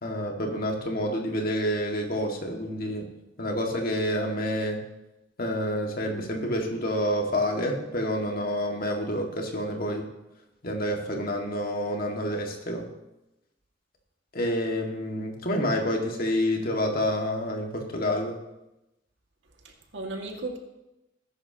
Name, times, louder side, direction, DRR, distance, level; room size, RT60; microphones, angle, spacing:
voice 1, 0.0-3.1 3.4-4.8 5.4-10.0 10.6-12.9 14.3-18.4, equal, 55° left, 1 dB, 2.0 m, -28 dB
voice 2, 19.4-20.6, right 2 dB, 85° right, 2 dB, 2.1 m, -36 dB
19.0 x 10.5 x 3.0 m, 0.94 s
head